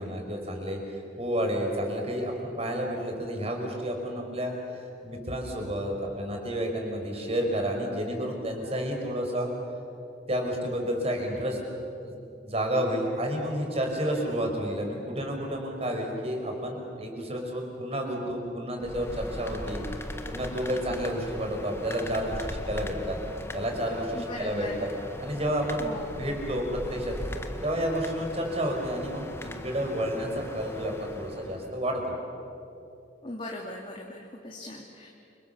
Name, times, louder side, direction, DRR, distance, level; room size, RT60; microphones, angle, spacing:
voice 1, 0.0-4.5 5.0-9.5 10.3-11.6 12.0-12.1 12.4-19.8 20.3-23.2 23.5-24.9 25.2-25.9 26.2-27.2 27.6-32.0, equal, 35° right, 2 dB, 5.3 m, -30 dB
sound 1, 18.8-31.8, left 1 dB, 15° left, 1.6 m, -39 dB
voice 2, 24.1-24.9 25.8-26.1 33.2-35.1, left 1 dB, 30° left, -1 dB, 2.6 m, -39 dB
30.0 x 27.0 x 7.3 m, 2.7 s
head